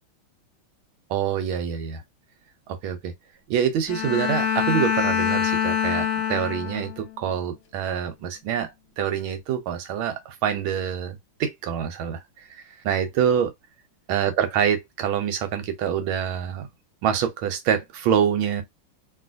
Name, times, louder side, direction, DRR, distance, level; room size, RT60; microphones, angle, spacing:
voice 1, 1.1-2.0 2.7-3.1 3.5-8.7 9.0-13.5 14.1-16.7 17.0-18.6, right 8 dB, 80° right, 1.5 m, -26 dB
Bowed string instrument, 3.9-7.1, left 8 dB, 75° left, 0.8 m, -25 dB
3.1 x 2.7 x 2.4 m
omnidirectional pair, 2.2 m